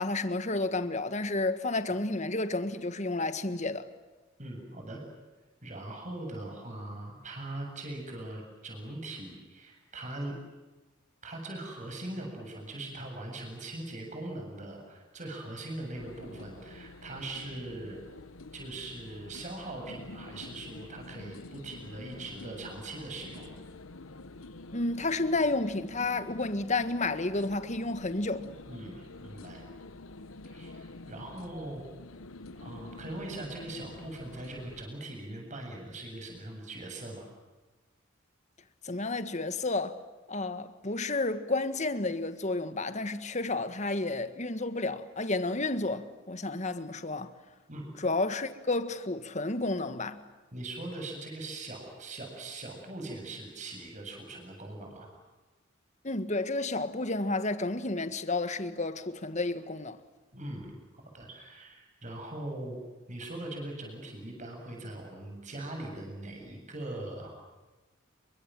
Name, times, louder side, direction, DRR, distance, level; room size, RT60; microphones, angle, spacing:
voice 1, 0.0-3.9 24.7-28.4 38.8-40.0 40.3-47.3 48.0-50.2 56.0-60.0, left 2 dB, 35° left, 1.6 m, -31 dB
voice 2, 4.4-5.0 5.6-10.4 11.2-18.0 18.5-23.5 28.7-29.6 30.5-31.8 32.5-37.3 47.7-47.9 50.5-55.1 60.3-62.8 63.1-67.5, right 2 dB, 35° right, 7.8 m, -41 dB
sound 1, 15.9-34.8, left 2 dB, 85° left, 1.2 m, -48 dB
30.0 x 24.5 x 7.8 m
head